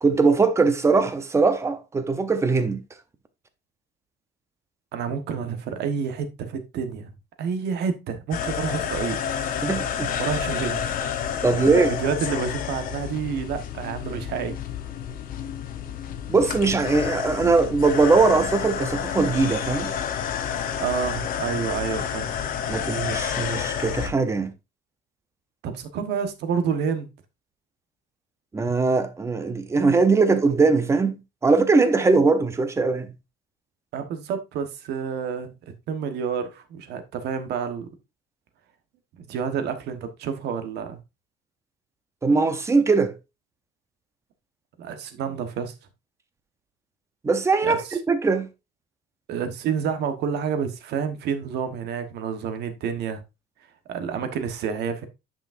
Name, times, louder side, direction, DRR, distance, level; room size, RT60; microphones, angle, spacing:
voice 1, 0.0-2.8 9.6-10.1 11.4-11.9 16.3-19.9 22.7-24.5 28.5-33.1 42.2-43.1 47.2-47.8 48.1-48.5, right 4 dB, 15° right, 0.7 m, -21 dB
voice 2, 4.9-7.1 7.4-9.2 10.2-11.0 11.5-14.6 20.8-22.3 25.6-27.1 33.9-37.9 39.2-41.0 44.8-45.7 47.6-48.0 49.3-53.2 53.9-55.1, right 7 dB, 55° right, 1.3 m, -29 dB
sound 1, 8.3-24.1, left 8 dB, 45° left, 0.9 m, -30 dB
9.8 x 5.9 x 2.6 m
cardioid pair, 180°, 20 cm